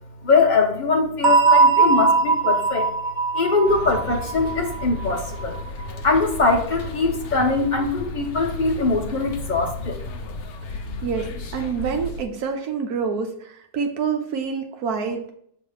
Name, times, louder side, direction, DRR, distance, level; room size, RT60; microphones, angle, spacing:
voice 1, 0.2-2.9 3.3-5.6 6.0-10.0, left 3 dB, 35° left, 1 dB, 0.9 m, -22 dB
sound 1, 1.2-5.9, right 4 dB, 45° right, 0.6 m, -20 dB
sound 2, 3.6-12.2, left 3 dB, 55° left, 0.7 m, -34 dB
voice 2, 11.5-15.3, right 6 dB, 80° right, 4 dB, 1.4 m, -27 dB
6.5 x 3.1 x 4.8 m, 0.67 s
omnidirectional pair, 1.6 m